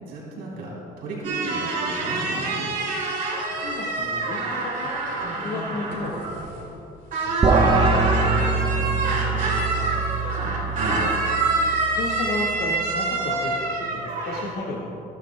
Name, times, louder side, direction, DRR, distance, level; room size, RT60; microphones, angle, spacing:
voice 1, 0.1-2.7 10.7-11.0, right 2 dB, 70° right, -4 dB, 2.9 m, -33 dB
sound 1, 1.2-6.8 7.1-14.5, right 3 dB, 55° right, 3.0 m, -26 dB
voice 2, 3.6-5.2 5.4-6.2 7.2-8.4 9.1-10.6 12.0-14.9, left 3 dB, 70° left, -5 dB, 1.7 m, -33 dB
sound 2, 7.4-12.9, right 4 dB, 30° right, 1.0 m, -24 dB
23.0 x 10.5 x 2.2 m, 2.9 s
cardioid pair, 110°, 17 cm